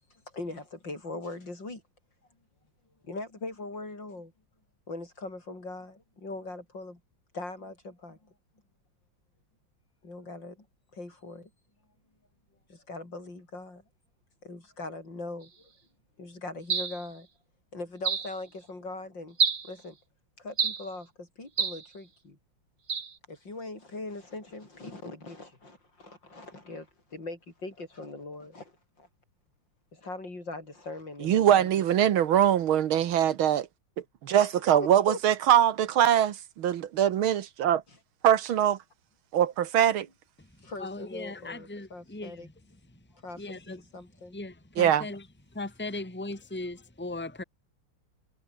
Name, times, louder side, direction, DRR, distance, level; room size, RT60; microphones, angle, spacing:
voice 1, 0.3-1.8 3.1-4.3 4.9-7.0 7.3-8.2 10.0-10.6 10.9-11.5 12.7-13.8 14.4-15.5 16.2-17.3 17.7-19.4 19.7-19.9 20.4-22.4 23.3-26.9 27.1-28.6 30.0-31.9 34.3-35.2 37.9-38.0 40.6-42.5 43.2-44.4, left 2 dB, 55° left, 7.3 m, -41 dB
sound 1, 16.7-17.1 18.0-18.3 19.4-19.7 20.6-20.9 21.6-21.9 22.9-23.1, right 6 dB, 40° right, 1.8 m, -28 dB
voice 2, 31.2-33.7 34.2-37.8 38.2-38.8 39.3-40.1 44.8-45.1, right 10 dB, 75° right, 1.9 m, -23 dB
voice 3, 40.8-42.5 43.4-43.8 44.3-45.3 45.5-47.4, left 2 dB, 5° left, 2.3 m, -38 dB
omnidirectional pair, 2.3 m